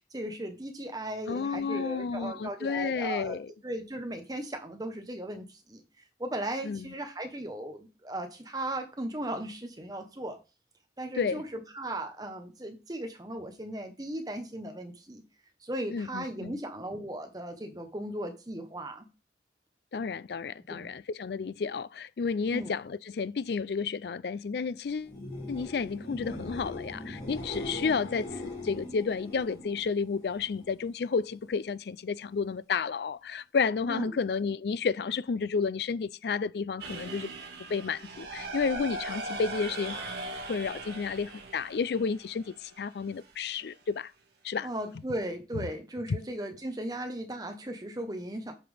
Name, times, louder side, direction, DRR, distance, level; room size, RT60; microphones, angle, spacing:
voice 1, 0.0-3.4 3.6-5.8 6.2-10.4 11.0-15.2 15.6-19.1 20.7-20.9 22.5-22.7 33.9-34.2 44.6-48.5, right 1 dB, 20° right, 1.1 m, -37 dB
voice 2, 1.3-3.5 6.6-6.9 11.2-11.4 15.9-16.6 19.9-25.2 25.5-37.3 37.7-40.0 40.5-44.1 44.4-44.7 45.5-45.7 46.1-46.2, left 5 dB, 65° left, 0.4 m, -31 dB
sound 1, 25.0-30.8 31.1-31.7 38.8-38.9, left 1 dB, 40° left, 2.4 m, -41 dB
sound 2, 36.8-42.8, right 2 dB, 70° right, 2.0 m, -39 dB
8.5 x 5.9 x 3.4 m
head